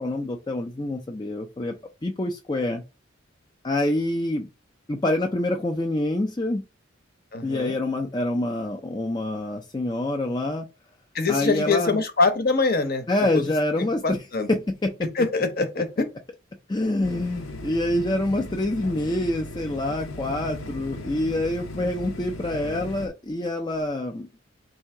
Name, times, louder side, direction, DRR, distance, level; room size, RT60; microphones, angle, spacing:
voice 1, 0.0-1.7 2.0-2.8 3.6-4.5 4.9-6.6 7.4-10.7 11.3-12.0 13.1-14.2 14.5-14.9 16.7-24.3, left 1 dB, 20° left, 0.4 m, -26 dB
voice 2, 7.3-7.7 11.1-13.0 14.0-14.5 15.1-16.1, left 3 dB, 50° left, 0.8 m, -23 dB
sound 1, 17.0-23.1, left 1 dB, 85° left, 0.7 m, -37 dB
3.6 x 2.8 x 4.4 m
head